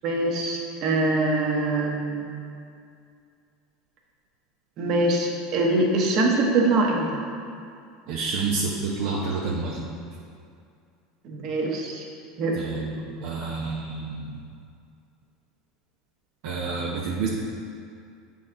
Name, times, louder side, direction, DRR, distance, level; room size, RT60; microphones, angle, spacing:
voice 1, 0.0-2.3 4.8-7.2 11.2-12.1 12.4-12.8, right 2 dB, 55° right, -1 dB, 1.1 m, -24 dB
voice 2, 8.1-9.9 12.5-14.3 16.4-17.3, right 4 dB, 70° right, -4 dB, 0.7 m, -29 dB
7.9 x 4.2 x 3.7 m, 2.4 s
supercardioid pair, 105°, 0 cm